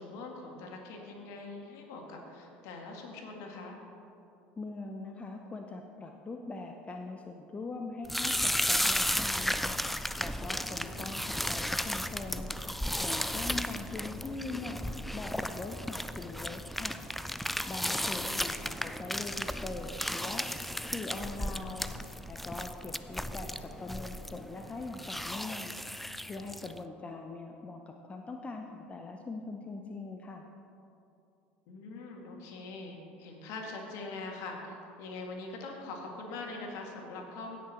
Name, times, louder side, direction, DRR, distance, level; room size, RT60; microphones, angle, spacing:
voice 1, 0.0-3.8 10.8-11.1 18.1-18.5 23.1-23.4 31.7-37.6, left 3 dB, 60° left, 1 dB, 2.0 m, -43 dB
voice 2, 4.6-12.5 13.0-14.8 15.1-17.0 17.7-20.5 20.9-21.9 22.3-30.5, left 3 dB, 20° left, 3 dB, 0.8 m, -42 dB
sound 1, 8.0-26.8, equal, ahead, 0.4 m, -34 dB
16.5 x 6.3 x 4.4 m, 2.7 s
hypercardioid pair, 75°, 6 cm